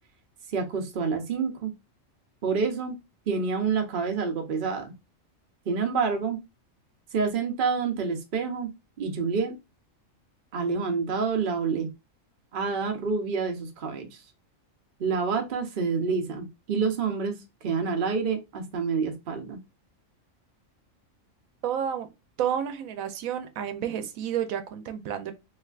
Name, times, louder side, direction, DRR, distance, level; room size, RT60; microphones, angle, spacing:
voice 1, 0.5-1.7 2.4-3.0 3.3-4.9 5.7-6.4 7.1-8.7 9.0-9.5 10.5-11.9 12.5-14.2 15.0-19.6, right 5 dB, 50° right, 0.8 m, -28 dB
voice 2, 21.6-22.1 22.4-25.3, right 9 dB, 90° right, 1.0 m, -30 dB
3.2 x 3.2 x 2.4 m
omnidirectional pair, 1.4 m